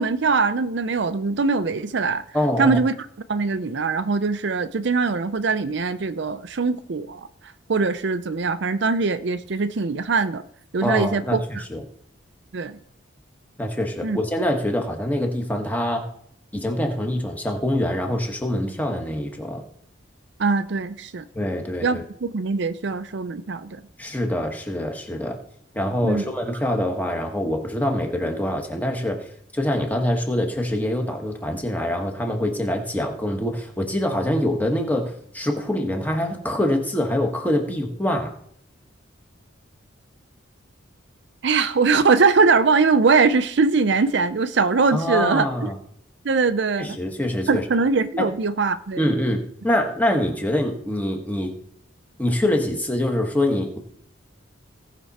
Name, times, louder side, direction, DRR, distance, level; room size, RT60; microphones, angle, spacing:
voice 1, 0.0-2.2 2.6-2.9 3.3-7.2 7.7-10.4 10.7-11.6 12.5-12.8 14.0-14.2 20.4-21.3 21.8-23.8 26.0-26.3 41.4-45.7 46.2-46.9 47.5-49.0, right 4 dB, 60° right, 11 dB, 0.5 m, -22 dB
voice 2, 2.3-2.8 10.8-11.4 11.7-11.8 13.6-16.1 16.5-19.6 21.3-22.0 24.0-25.4 25.7-29.3 29.5-38.3 44.9-45.8 46.8-47.6 48.2-48.3 49.0-51.5 52.2-53.8, left 1 dB, 10° left, 3 dB, 1.4 m, -24 dB
17.5 x 6.0 x 4.2 m, 0.66 s
head